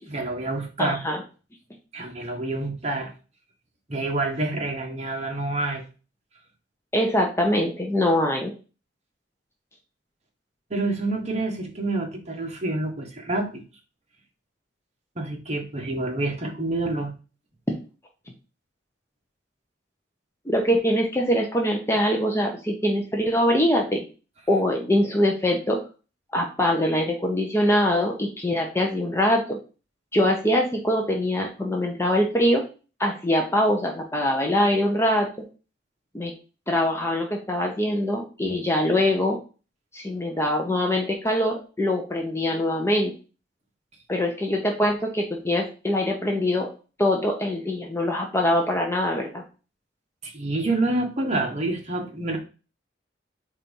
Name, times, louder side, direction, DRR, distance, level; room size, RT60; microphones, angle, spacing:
voice 1, 0.1-1.0 1.9-3.1 3.9-5.9 10.7-13.6 15.2-17.1 50.2-52.4, right 2 dB, 40° right, 1 dB, 1.5 m, -27 dB
voice 2, 0.8-1.2 6.9-8.5 17.7-17.8 20.5-24.0 24.5-25.8 26.3-29.6 30.1-32.6 33.0-35.3 36.1-36.3 36.7-39.4 39.9-43.1 44.1-46.7 47.0-49.4, left 1 dB, 15° left, 1 dB, 0.8 m, -23 dB
4.4 x 4.1 x 5.3 m, 0.34 s
head